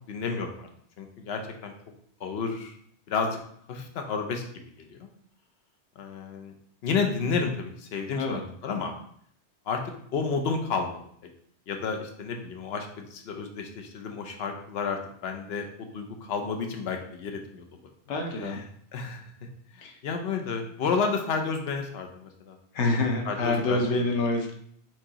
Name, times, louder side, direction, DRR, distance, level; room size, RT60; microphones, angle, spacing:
voice 1, 0.1-0.7 1.0-1.7 2.2-2.7 3.1-3.4 3.7-4.4 4.8-5.1 6.0-6.5 6.8-8.9 9.7-9.8 10.1-11.0 11.7-17.6 18.4-18.6 18.9-19.2 20.0-22.6 22.8-23.0 23.3-23.9, left 5 dB, 65° left, 4 dB, 0.9 m, -31 dB
voice 2, 18.1-18.6 19.8-19.9 22.7-24.5, left 2 dB, 90° left, 3 dB, 1.1 m, -26 dB
4.6 x 3.6 x 2.8 m, 0.66 s
omnidirectional pair, 1.2 m